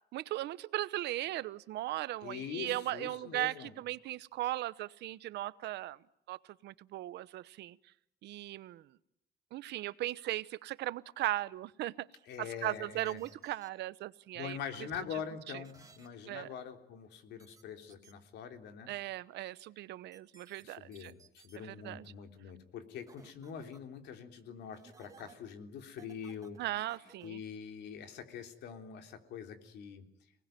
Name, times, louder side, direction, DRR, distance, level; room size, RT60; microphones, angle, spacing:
voice 1, 0.1-6.0 6.3-7.8 8.2-8.8 9.5-12.1 12.4-14.6 16.3-16.5 18.9-21.1 21.6-22.0 26.6-27.4, right 15 dB, 80° right, 17 dB, 1.0 m, -38 dB
voice 2, 2.2-3.7 12.3-13.2 14.3-18.9 20.6-26.6 27.2-30.0, left 7 dB, 80° left, 6 dB, 3.6 m, -44 dB
sound 1, 12.9-13.7 15.6-16.1 17.4-17.6 17.9-18.1 20.1-20.6 20.9-21.6 23.1-23.8 24.7-25.3 26.0-27.3, right 5 dB, 20° right, 2.6 m, -59 dB
29.5 x 20.0 x 9.2 m, 0.80 s
cardioid pair, 180°, 17 cm